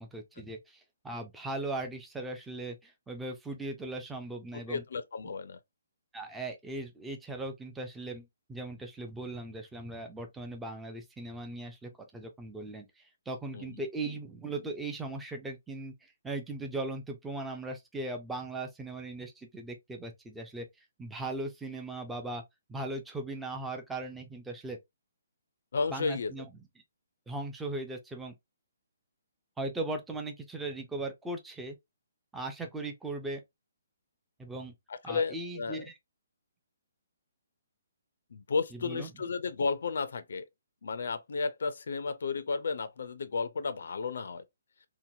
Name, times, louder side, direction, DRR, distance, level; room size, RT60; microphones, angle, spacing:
voice 1, 0.0-4.8 5.2-5.3 6.1-22.4 22.7-24.8 25.9-26.7 27.3-28.3 29.6-31.8 32.3-33.4 34.4-34.7 35.0-36.0 38.7-39.1, right 2 dB, 5° right, 0.3 m, -38 dB
voice 2, 4.7-5.6 13.5-13.8 25.7-26.3 34.9-35.9 38.3-40.5 40.8-44.4, left 4 dB, 65° left, 0.4 m, -33 dB
2.8 x 2.1 x 2.6 m
hypercardioid pair, 170°, 0 cm